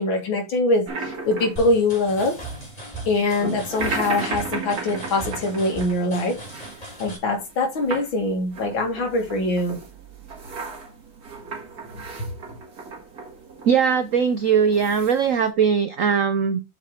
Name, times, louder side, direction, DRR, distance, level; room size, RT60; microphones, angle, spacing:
voice 1, 0.0-2.3 3.1-6.4 7.0-9.8 12.2-12.3, left 2 dB, 75° left, 2 dB, 2.8 m, -23 dB
sound 1, 0.9-15.5, right 4 dB, 50° right, 2.2 m, -36 dB
sound 2, 1.6-7.2, right 2 dB, 20° left, 2.9 m, -37 dB
voice 2, 13.6-16.6, right 6 dB, 85° right, 10 dB, 0.7 m, -20 dB
7.1 x 4.5 x 4.9 m, 0.26 s
omnidirectional pair, 2.2 m